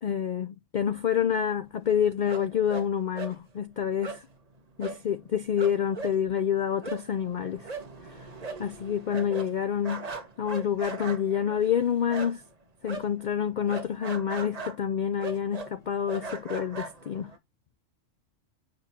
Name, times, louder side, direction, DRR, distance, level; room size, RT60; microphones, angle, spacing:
voice 1, 0.0-4.2 4.8-7.7 8.1-8.2 8.6-10.1 10.4-12.4 12.8-17.3, left 8 dB, 75° left, 0.4 m, -28 dB
sound 1, 2.3-2.9 3.1-3.4 4.0-4.2 4.8-5.0 5.3-5.4 5.6-12.5 12.8-17.4, right 3 dB, 30° right, 1.1 m, -39 dB
6.3 x 6.0 x 2.8 m
omnidirectional pair, 1.4 m